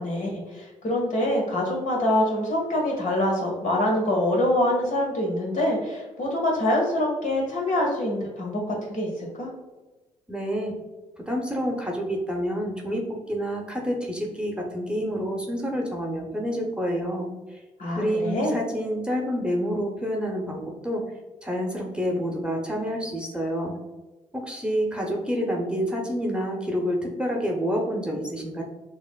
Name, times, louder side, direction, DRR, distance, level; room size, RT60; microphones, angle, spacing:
voice 1, 0.0-9.5 17.8-18.6, left 1 dB, 50° left, -1 dB, 1.4 m, -25 dB
voice 2, 10.3-10.7 11.3-13.0 13.3-17.3 17.9-21.0 21.4-23.7 24.3-28.6, equal, 5° right, 0 dB, 0.9 m, -28 dB
6.3 x 2.5 x 2.2 m, 1.1 s
hypercardioid pair, 40°, 16 cm